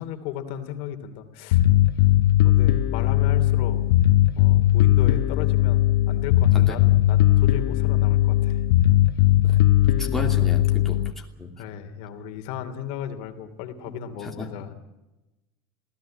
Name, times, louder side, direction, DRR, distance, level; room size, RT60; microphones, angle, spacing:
voice 1, 0.0-1.6 2.4-3.9 4.3-8.6 11.6-14.7, left 8 dB, 55° left, 7 dB, 2.8 m, -36 dB
Bass guitar, 1.5-11.1, left 14 dB, 85° left, 1.2 m, -19 dB
voice 2, 10.0-11.5 13.8-14.0 14.2-14.5, left 1 dB, 5° left, -1 dB, 2.9 m, -33 dB
27.5 x 17.0 x 8.9 m, 1.0 s
cardioid pair, 160°, 12 cm